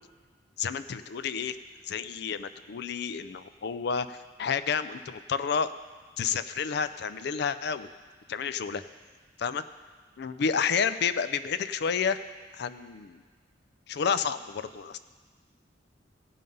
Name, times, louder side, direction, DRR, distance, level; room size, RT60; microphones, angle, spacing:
voice 1, 0.6-1.6 1.8-5.7 6.2-7.9 8.3-8.8 9.4-9.6 10.2-12.2 12.5-13.2 13.9-15.0, left 6 dB, 60° left, 13 dB, 0.4 m, -30 dB
16.0 x 5.6 x 5.4 m, 1.4 s
head